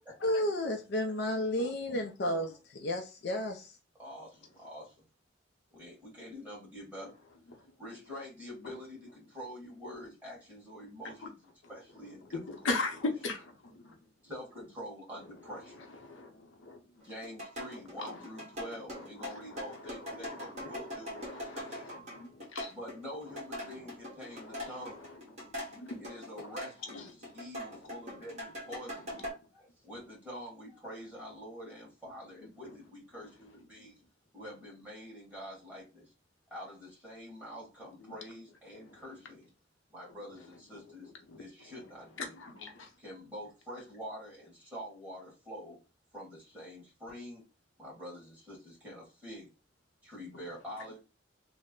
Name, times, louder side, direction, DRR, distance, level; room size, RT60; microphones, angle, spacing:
voice 1, 0.2-3.7, left 1 dB, 55° left, 0.5 m, -32 dB
voice 2, 4.0-5.0 5.7-7.1 7.8-12.4 14.2-15.8 17.0-22.0 22.7-25.0 25.9-34.0 34.3-36.1 36.5-39.5 39.9-41.1 41.4-42.3 43.0-45.8 46.1-47.4 47.8-49.5 50.0-51.0, equal, 10° right, 1.5 m, -46 dB
voice 3, 12.5-14.0 16.0-17.0 18.0-18.2 18.9-22.7 23.3-23.4 23.7-23.8 24.3-26.0 26.4-26.5 26.9-27.4 28.1-28.2 33.8-33.9 38.1-38.2 40.7-41.4 42.2-42.9, left 3 dB, 85° left, 0.8 m, -40 dB
sound 1, 17.0-27.0 27.2-29.3, left 1 dB, 35° right, 1.4 m, -41 dB
3.1 x 2.0 x 3.6 m
head